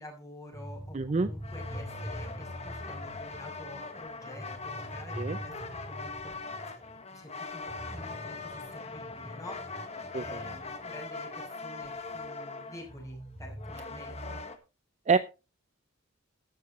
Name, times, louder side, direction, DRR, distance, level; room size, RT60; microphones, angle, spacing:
voice 1, 0.0-6.5 7.1-9.6 10.1-14.4, left 1 dB, 15° left, 0 dB, 6.4 m, -48 dB
sound 1, 0.5-7.0 7.3-7.4 7.7-12.3 12.8-14.4, equal, 5° right, 3.8 m, -44 dB
voice 2, 0.9-1.3 5.2-5.4 10.1-10.4 15.1-15.2, right 4 dB, 35° right, 12 dB, 0.5 m, -26 dB
sound 2, 1.4-14.6, left 3 dB, 35° left, 1.5 m, -41 dB
14.0 x 11.5 x 3.1 m, 0.30 s
head